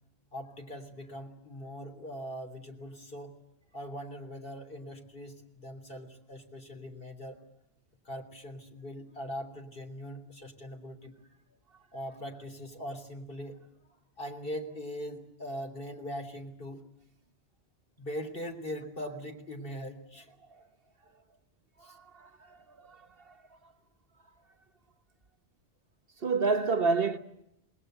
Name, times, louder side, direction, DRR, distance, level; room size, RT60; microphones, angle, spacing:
voice 1, 0.3-3.3 3.7-7.4 8.1-11.1 11.9-13.6 14.2-16.8 18.0-20.3 21.8-22.0, equal, 55° left, 3.6 m, -41 dB
voice 2, 21.8-23.4 26.2-27.2, right 4 dB, 60° right, 1.4 m, -30 dB
27.5 x 20.5 x 8.0 m
omnidirectional pair, 1.1 m